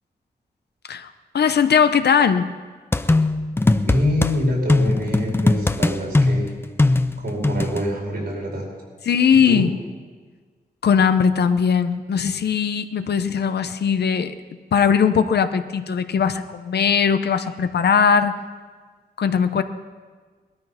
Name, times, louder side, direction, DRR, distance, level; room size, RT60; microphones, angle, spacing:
voice 1, 0.9-2.5 9.0-9.7 10.8-14.4 14.7-18.4 19.2-19.6, left 7 dB, 85° left, 10 dB, 0.8 m, -19 dB
sound 1, 2.9-4.3 4.7-7.8, left 2 dB, 15° left, 0.5 m, -19 dB
voice 2, 3.8-6.5 7.2-8.7 9.4-9.6, left 1 dB, 80° right, -2 dB, 5.0 m, -25 dB
19.0 x 13.0 x 5.7 m, 1.5 s
wide cardioid pair, 150°, 17 cm